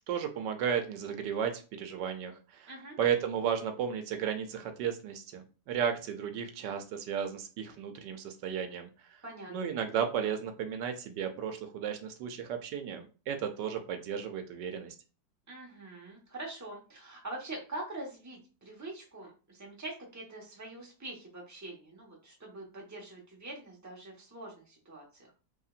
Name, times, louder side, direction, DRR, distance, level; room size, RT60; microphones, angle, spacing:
voice 1, 0.1-2.7 3.0-9.2 9.5-14.9, right 8 dB, 80° right, 6 dB, 1.3 m, -34 dB
voice 2, 9.2-9.7 15.5-25.3, right 2 dB, 10° right, -2 dB, 1.1 m, -44 dB
5.5 x 3.3 x 2.5 m, 0.34 s
omnidirectional pair, 1.9 m